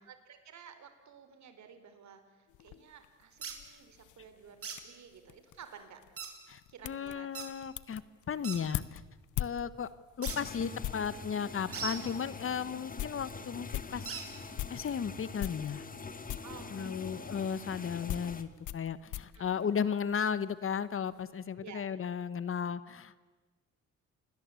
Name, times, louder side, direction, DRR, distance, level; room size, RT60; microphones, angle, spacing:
voice 1, 0.0-6.0 6.7-7.5 11.7-12.2 16.4-17.3 19.3-20.0 21.6-21.9, right 7 dB, 65° right, 9 dB, 4.1 m, -53 dB
sound 1, 2.5-11.2 11.9-12.0 12.4-12.5 12.8-15.0 15.4-16.0 16.3-16.6 17.5-20.4 20.7-21.2, left 13 dB, 80° left, 1.0 m, -42 dB
sound 2, 3.4-3.6 4.6-4.8 6.2-6.3 7.3-7.5 8.4-8.6 10.2-10.4 11.7-12.0 14.1-14.3, right 6 dB, 50° right, 4.6 m, -39 dB
voice 2, 6.5-8.0 8.3-9.0 9.4-9.9 10.2-14.1 14.7-15.8 16.7-23.3, left 7 dB, 45° left, 16 dB, 1.2 m, -35 dB
sound 3, 10.3-18.4, left 4 dB, 30° left, 1.9 m, -45 dB
28.0 x 20.5 x 8.4 m, 1.3 s
cardioid pair, 90°, 30 cm